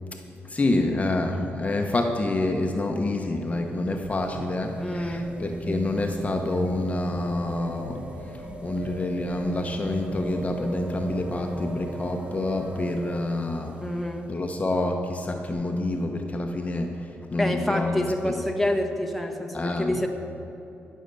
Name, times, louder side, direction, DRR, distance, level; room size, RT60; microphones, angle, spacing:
voice 1, 0.1-13.8 14.3-18.4 19.5-20.1, left 2 dB, 30° left, 3 dB, 1.0 m, -28 dB
sound 1, 3.4-14.3 15.5-15.6, right 1 dB, 25° right, 1.3 m, -37 dB
voice 2, 4.8-5.3 13.8-14.3 17.4-20.1, left 1 dB, ahead, 2 dB, 1.3 m, -27 dB
16.5 x 6.6 x 6.8 m, 2.9 s
cardioid pair, 75°, 5 cm